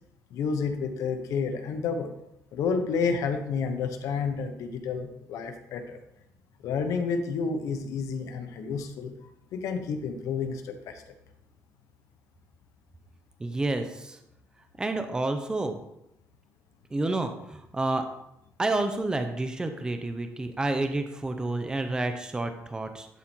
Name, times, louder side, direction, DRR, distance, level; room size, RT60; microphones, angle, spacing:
voice 1, 0.3-2.1 2.5-6.0 6.6-9.1 9.5-11.0, left 5 dB, 75° left, 7 dB, 1.0 m, -30 dB
voice 2, 13.4-14.2 14.8-15.8 16.9-18.0 18.6-23.1, right 2 dB, 15° right, 7 dB, 0.7 m, -29 dB
11.0 x 4.2 x 4.5 m, 0.82 s
cardioid pair, 130°, 6 cm